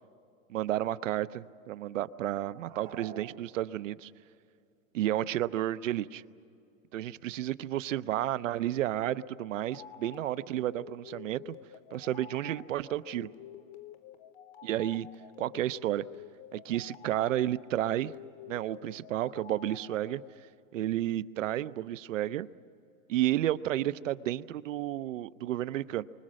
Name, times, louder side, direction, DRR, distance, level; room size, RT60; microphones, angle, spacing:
voice 1, 0.5-4.1 4.9-6.2 6.9-11.6 11.9-13.3 14.6-15.1 15.4-16.0 16.5-18.1 18.5-20.2 20.7-22.5 23.1-26.0, right 13 dB, 70° right, 14 dB, 0.8 m, -31 dB
sound 1, 2.4-4.1, right 9 dB, 15° right, 0.8 m, -49 dB
sound 2, 9.0-20.4, left 10 dB, 35° left, 1.0 m, -50 dB
30.0 x 25.0 x 6.4 m, 2.5 s
supercardioid pair, 170°, 40 cm